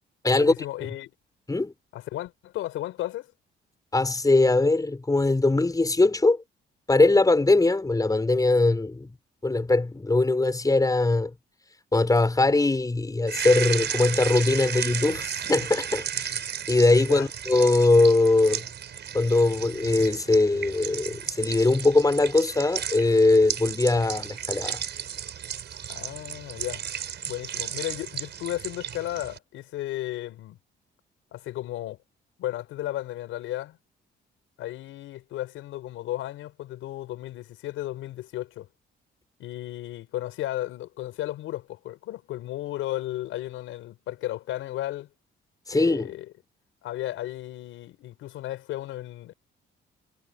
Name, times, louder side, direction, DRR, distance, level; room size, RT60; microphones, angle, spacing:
voice 1, 0.3-1.1 1.9-3.3 17.0-17.3 25.9-26.8 27.2-30.6 31.3-32.0 32.4-33.8 34.6-38.7 39.4-45.1 45.7-46.3 46.8-49.3, left 14 dB, 90° left, 5.7 m, -34 dB
voice 2, 3.9-6.4 6.9-9.1 9.4-11.3 11.9-16.3 16.7-18.7 19.1-24.8 45.7-46.1, left 2 dB, 20° left, 5.0 m, -21 dB
sound 1, 13.3-29.4, right 9 dB, 60° right, 5.9 m, -34 dB
cardioid pair, 90°, 20 cm